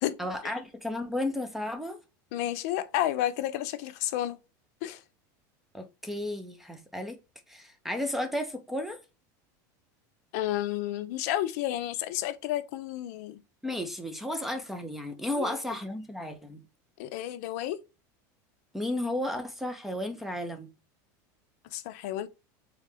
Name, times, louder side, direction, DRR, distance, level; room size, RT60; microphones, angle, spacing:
voice 1, 0.2-2.0 5.7-7.2 7.5-9.0 13.6-16.6 18.7-20.7, left 1 dB, 5° right, 0.4 m, -33 dB
voice 2, 2.3-4.4 4.8-5.0 10.3-13.4 15.4-15.7 17.0-17.8 21.7-22.3, left 13 dB, 60° left, 0.5 m, -31 dB
3.7 x 3.2 x 3.1 m
supercardioid pair, 165°, 10 cm